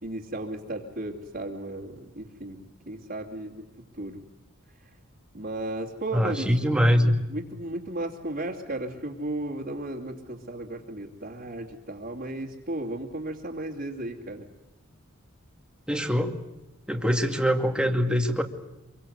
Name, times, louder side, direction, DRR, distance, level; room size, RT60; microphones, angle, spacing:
voice 1, 0.0-3.6 3.9-4.2 5.3-6.9 7.3-14.5, right 1 dB, 45° right, -5 dB, 2.9 m, -35 dB
voice 2, 6.1-7.2 15.9-16.4 16.9-18.4, equal, 5° right, 4 dB, 2.3 m, -23 dB
26.5 x 23.5 x 8.2 m, 0.97 s
head